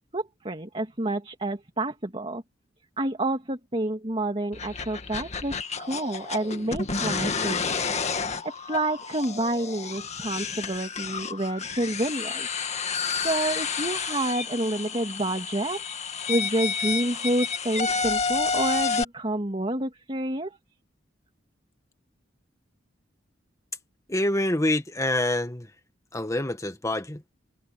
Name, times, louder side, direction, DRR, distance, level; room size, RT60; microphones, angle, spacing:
voice 1, 0.1-2.4 3.0-12.5 13.2-20.6, right 1 dB, 30° right, 2.5 m, -29 dB
sound 1, 4.5-19.0, left 5 dB, 35° left, 1.8 m, -30 dB
voice 2, 24.1-25.7 26.1-27.4, left 1 dB, 15° left, 1.6 m, -26 dB
head